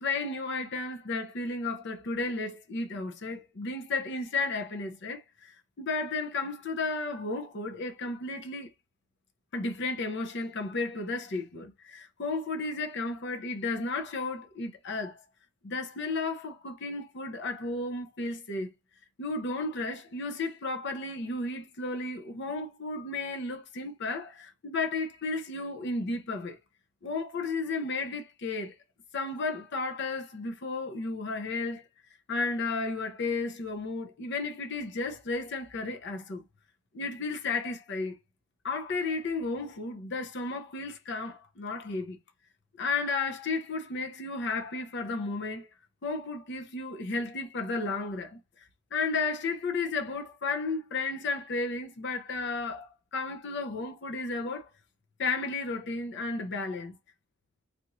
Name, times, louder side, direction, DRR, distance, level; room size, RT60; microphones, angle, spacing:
voice 1, 0.0-8.7 9.5-15.2 15.6-18.7 19.2-26.6 27.0-28.7 29.1-31.8 32.3-36.4 36.9-38.1 38.6-42.2 42.8-45.7 46.0-48.4 48.9-54.7 55.2-56.9, left 3 dB, 55° left, 0.6 m, -33 dB
3.3 x 2.5 x 3.0 m
head